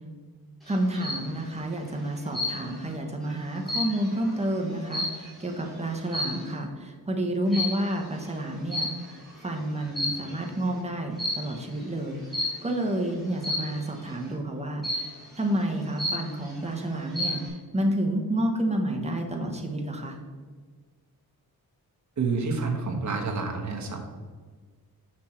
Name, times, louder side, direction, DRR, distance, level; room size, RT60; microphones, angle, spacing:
sound 1, 0.7-1.3 2.3-2.9 3.3-5.5 6.1-6.5 7.5-7.9 8.7-9.3 9.8-10.5 11.2-11.6 12.3-12.7 13.4-13.9 14.8-15.3 15.7-15.8 16.0-16.6 17.0-17.5, left 1 dB, ahead, 2.2 m, -31 dB
voice 1, 0.7-8.9 9.4-12.2 12.6-14.8 15.4-17.4 17.7-20.2, right 1 dB, 15° right, 2 dB, 1.0 m, -29 dB
voice 2, 22.2-24.0, right 4 dB, 50° right, 2 dB, 1.2 m, -28 dB
6.1 x 6.0 x 4.4 m, 1.5 s
wide cardioid pair, 165°, 37 cm